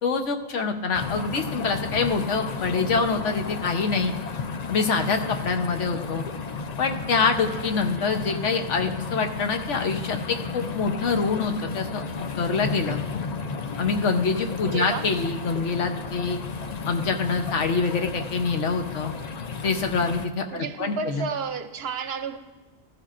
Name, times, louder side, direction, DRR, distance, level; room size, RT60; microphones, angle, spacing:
voice 1, 0.0-4.1 4.7-6.2 6.8-12.0 12.4-13.0 13.8-16.4 16.9-19.1 19.6-21.3, left 4 dB, 75° left, 5 dB, 1.2 m, -25 dB
sound 1, 0.9-20.3, left 4 dB, 50° left, 0.5 m, -33 dB
voice 2, 14.6-15.1 20.5-22.4, right 5 dB, 65° right, 9 dB, 0.8 m, -31 dB
15.0 x 14.5 x 2.5 m, 1.3 s
omnidirectional pair, 1.2 m